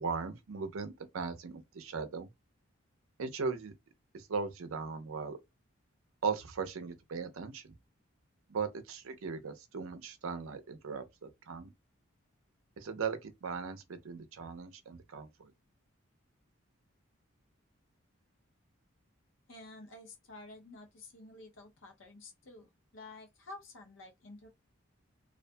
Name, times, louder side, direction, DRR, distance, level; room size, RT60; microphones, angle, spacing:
voice 1, 0.0-2.3 3.2-3.7 4.1-5.4 6.2-7.7 8.5-11.7 12.8-15.5, right 5 dB, 80° right, 0.5 m, -38 dB
voice 2, 19.5-24.5, left 2 dB, 65° left, 0.7 m, -51 dB
2.5 x 2.4 x 2.2 m
head